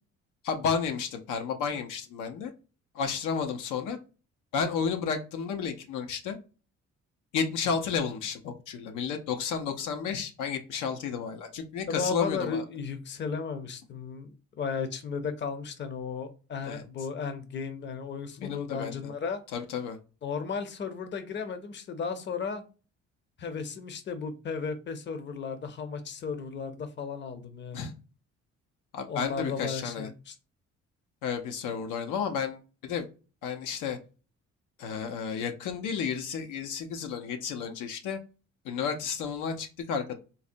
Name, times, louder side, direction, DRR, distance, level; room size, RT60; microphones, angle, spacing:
voice 1, 0.4-2.5 2.9-4.0 4.5-6.4 7.3-12.6 16.6-16.8 18.4-19.0 19.5-20.0 27.7-27.9 28.9-30.1 31.2-33.1 33.4-34.0 34.8-38.2 38.6-40.1, left 6 dB, 90° left, 6 dB, 0.6 m, -32 dB
voice 2, 11.9-19.4 20.2-22.6 23.4-27.9 29.1-30.3, left 5 dB, 40° left, 9 dB, 0.6 m, -35 dB
4.0 x 2.1 x 2.5 m, 0.34 s
cardioid pair, 90°, 30 cm